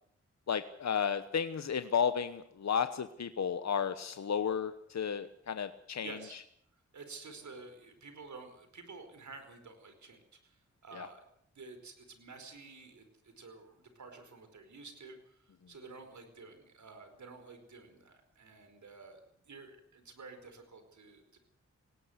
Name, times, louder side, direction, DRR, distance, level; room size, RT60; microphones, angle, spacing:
voice 1, 0.5-6.4 10.9-11.1, left 7 dB, 65° left, 11 dB, 1.1 m, -33 dB
voice 2, 6.0-6.4 6.9-10.6 10.8-11.2 11.5-21.4, right 4 dB, 75° right, 8 dB, 4.8 m, -51 dB
19.5 x 18.0 x 8.1 m, 0.67 s
cardioid pair, 75°, 29 cm